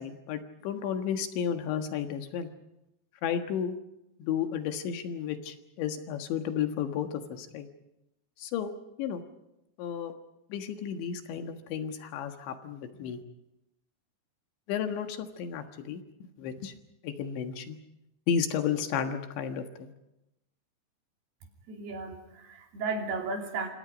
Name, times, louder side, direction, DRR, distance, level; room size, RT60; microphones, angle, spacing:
voice 1, 0.0-2.5 3.2-3.8 4.2-7.7 8.4-8.7 9.0-9.2 9.8-10.1 10.5-13.2 14.7-16.0 16.4-16.7 17.0-17.8 18.3-19.9, left 8 dB, 85° left, 6 dB, 3.9 m, -32 dB
voice 2, 21.7-23.7, right 3 dB, 65° right, 2 dB, 4.8 m, -34 dB
27.5 x 26.5 x 5.2 m, 0.89 s
omnidirectional pair, 5.1 m